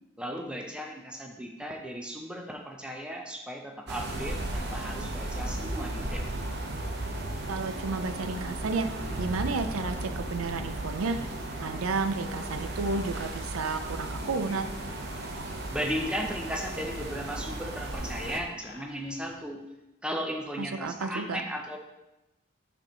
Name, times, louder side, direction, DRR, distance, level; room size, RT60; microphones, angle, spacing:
voice 1, 0.2-6.3 15.7-19.6 20.0-21.8, equal, 5° right, 2 dB, 0.6 m, -36 dB
sound 1, 3.9-18.4, right 1 dB, 50° right, 0.8 m, -35 dB
voice 2, 7.5-8.9 9.2-11.2 11.6-14.7 20.6-21.4, right 4 dB, 85° right, 10 dB, 0.5 m, -31 dB
Laughter, 14.1-19.5, left 1 dB, 65° left, 1.0 m, -51 dB
5.4 x 4.4 x 5.6 m, 0.97 s
head